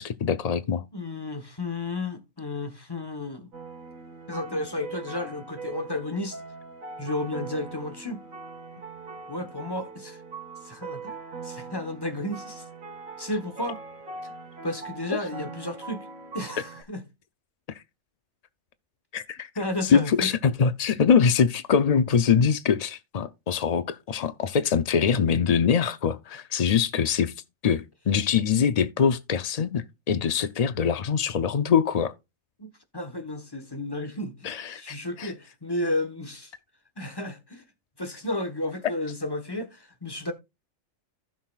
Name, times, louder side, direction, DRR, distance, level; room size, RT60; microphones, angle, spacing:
voice 1, 0.0-0.9 19.1-19.5 19.8-27.3 27.6-32.1 34.4-35.3, left 6 dB, 70° left, 0.3 m, -23 dB
voice 2, 0.9-3.5 4.3-6.4 7.0-8.3 9.3-10.2 10.6-11.2 11.4-12.6 13.2-13.8 14.6-16.1 16.3-17.0 19.6-20.3 32.6-36.5 37.0-37.6 38.0-40.3, left 1 dB, 20° left, 1.1 m, -32 dB
sound 1, 3.5-16.8, right 4 dB, 75° right, 2.0 m, -41 dB
15.5 x 6.3 x 2.3 m
omnidirectional pair, 1.4 m